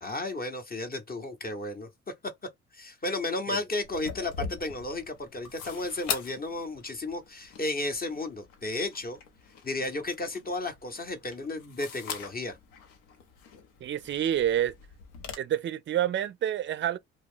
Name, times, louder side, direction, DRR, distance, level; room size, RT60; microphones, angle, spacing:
voice 1, 0.0-1.9 2.7-9.2 9.6-12.6, left 2 dB, 30° left, 0.8 m, -33 dB
sound 1, 3.8-15.3, left 6 dB, 80° left, 0.7 m, -42 dB
voice 2, 13.8-14.7 15.4-17.0, right 11 dB, 35° right, 0.4 m, -28 dB
2.3 x 2.0 x 3.5 m
hypercardioid pair, 55°, 32 cm